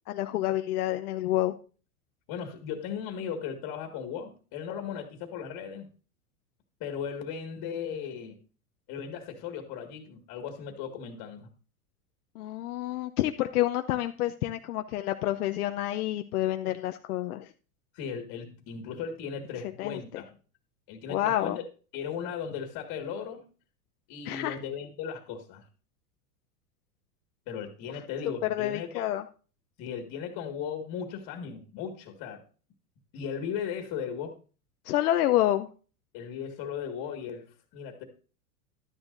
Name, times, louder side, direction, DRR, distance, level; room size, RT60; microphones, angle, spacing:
voice 1, 0.1-1.5 12.4-17.5 19.8-20.0 21.1-21.6 24.3-24.6 28.5-29.2 34.8-35.7, left 14 dB, 80° left, 7 dB, 0.7 m, -28 dB
voice 2, 2.3-5.9 6.8-8.4 8.9-11.5 17.9-20.4 20.9-21.6 21.9-23.4 24.1-25.6 27.5-29.1 29.8-32.4 33.1-34.3 36.1-38.0, left 7 dB, 45° left, 4 dB, 1.9 m, -37 dB
12.5 x 9.8 x 2.6 m, 0.39 s
hypercardioid pair, 110°, 45 cm